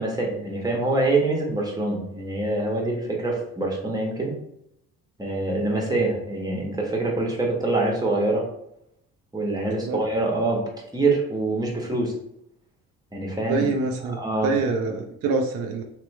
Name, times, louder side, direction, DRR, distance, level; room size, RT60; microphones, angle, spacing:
voice 1, 0.0-4.3 5.2-8.4 9.3-10.6 10.9-12.1 13.1-13.7 14.1-14.5, right 2 dB, 10° right, -2 dB, 1.2 m, -25 dB
voice 2, 9.7-10.0 13.5-14.2 14.4-15.8, right 4 dB, 35° right, 3 dB, 0.5 m, -25 dB
3.1 x 3.0 x 3.2 m, 0.76 s
figure-of-eight pair, 50°, 42 cm